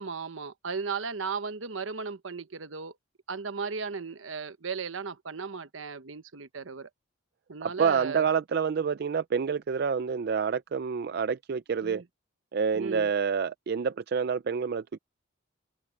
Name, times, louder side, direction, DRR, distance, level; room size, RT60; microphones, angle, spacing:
voice 1, 0.0-2.9 3.3-6.9 7.5-8.2 11.8-12.0 12.7-13.1, right 5 dB, 75° right, 1.0 m, -36 dB
voice 2, 7.6-12.0 12.5-14.8, right 6 dB, 50° right, 0.4 m, -28 dB
head